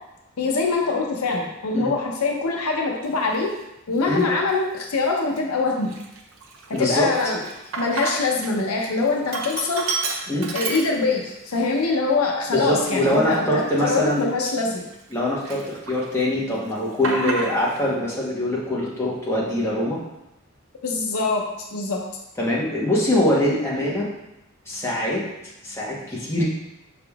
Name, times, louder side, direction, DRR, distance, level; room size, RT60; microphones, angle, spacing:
voice 1, 0.4-3.5 3.9-6.0 6.7-7.4 7.8-9.8 10.5-14.9 20.8-21.5 21.7-22.0, left 3 dB, 85° left, 0 dB, 0.7 m, -23 dB
Sink (filling or washing), 3.2-3.4 4.0-4.6 5.0-5.1 5.4-8.5 8.8-11.4 11.8-11.9 12.6-15.1 15.4-16.2 16.5-17.8, right 3 dB, 70° right, 0.6 m, -31 dB
voice 2, 6.7-7.1 10.3-10.5 12.5-14.3 15.1-20.0 22.4-24.1 24.7-25.2 25.6-26.4, left 1 dB, 10° left, -6 dB, 1.0 m, -23 dB
5.7 x 3.6 x 2.3 m, 0.90 s
head